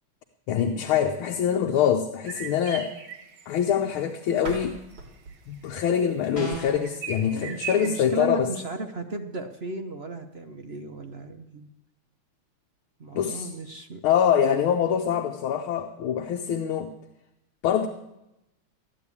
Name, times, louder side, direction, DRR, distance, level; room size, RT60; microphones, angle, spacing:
voice 1, 0.5-2.9 3.5-4.8 5.5-8.5 13.1-13.5 14.0-16.9 17.6-17.9, left 8 dB, 80° left, 4 dB, 1.7 m, -24 dB
sound 1, 2.3-3.5 4.3-4.4 4.8-8.1, right 6 dB, 85° right, 2.5 m, -39 dB
sound 2, 4.3-7.2, right 1 dB, 65° right, 3.5 m, -43 dB
sound 3, 6.4-6.9, right 3 dB, 30° left, 4.3 m, -32 dB
voice 2, 7.3-11.7 13.0-14.0, right 2 dB, 50° right, 5 dB, 0.7 m, -35 dB
14.0 x 10.0 x 8.5 m, 0.91 s
omnidirectional pair, 2.3 m